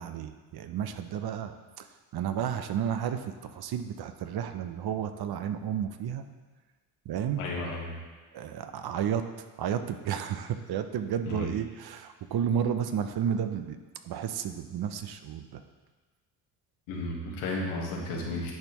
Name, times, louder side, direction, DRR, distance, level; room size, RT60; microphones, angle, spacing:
voice 1, 0.0-6.2 7.1-7.4 8.3-13.8 14.0-15.6, right 8 dB, 50° right, 9 dB, 0.6 m, -32 dB
voice 2, 7.4-8.0 11.2-11.5 16.9-18.5, left 2 dB, 80° left, -2 dB, 1.5 m, -33 dB
10.0 x 4.3 x 3.0 m, 1.3 s
hypercardioid pair, 60°, 49 cm